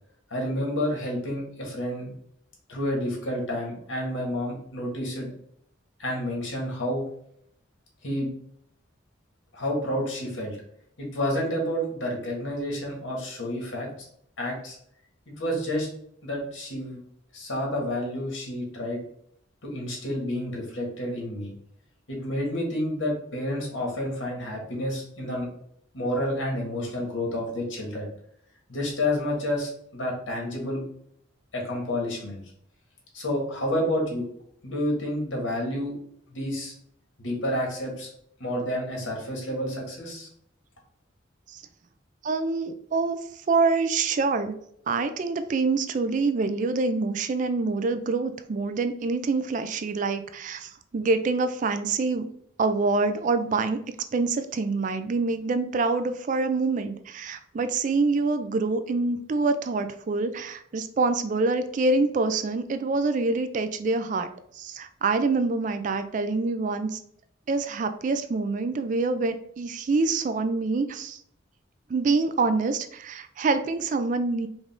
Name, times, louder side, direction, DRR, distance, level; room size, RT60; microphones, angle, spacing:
voice 1, 0.3-2.1 2.7-5.3 6.0-7.0 8.0-8.3 9.5-10.6 11.0-13.9 14.4-14.8 15.3-15.9 16.2-17.0 17.3-19.0 19.6-21.5 22.1-25.5 25.9-28.1 28.7-30.8 31.5-32.4 33.1-34.3 34.6-35.9 36.3-36.7 37.2-38.1 38.4-40.3, left 1 dB, 85° left, -1 dB, 1.6 m, -29 dB
voice 2, 42.2-44.6 44.9-52.3 52.6-53.8 54.1-64.3 64.5-67.0 67.5-71.2 71.9-74.5, right 3 dB, 40° right, 10 dB, 0.3 m, -26 dB
5.1 x 2.5 x 3.6 m, 0.69 s
head